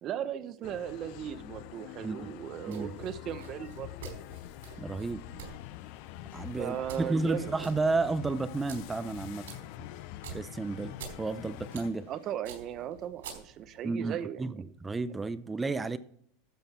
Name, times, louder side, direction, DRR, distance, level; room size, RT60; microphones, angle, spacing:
voice 1, 0.0-4.1 6.6-7.7 12.1-14.5, right 10 dB, 35° right, 0.9 m, -37 dB
sound 1, 0.6-11.9, left 16 dB, 55° left, 0.5 m, -45 dB
sound 2, 2.7-13.8, right 7 dB, 90° right, 4.3 m, -49 dB
voice 2, 4.8-5.2 6.3-9.5 10.3-12.1 13.8-16.0, right 3 dB, 10° right, 0.5 m, -32 dB
sound 3, 5.1-12.3, left 6 dB, 85° left, 4.7 m, -59 dB
12.5 x 8.1 x 4.3 m
supercardioid pair, 150°, 0 cm